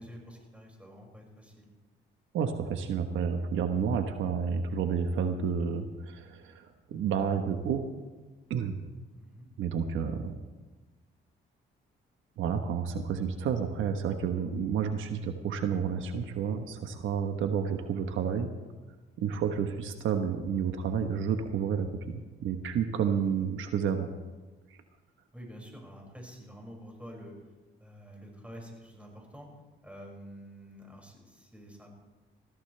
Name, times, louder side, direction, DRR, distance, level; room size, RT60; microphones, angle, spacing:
voice 1, 0.0-1.7 9.2-9.5 25.3-27.3 27.8-29.5 29.8-31.9, equal, 5° right, 0 dB, 5.9 m, -48 dB
voice 2, 2.3-7.8 8.5-8.7 9.6-10.4 12.4-18.5 19.2-24.1, right 7 dB, 80° right, 6 dB, 1.2 m, -30 dB
21.0 x 15.5 x 3.4 m, 1.3 s
cardioid pair, 90°, 20 cm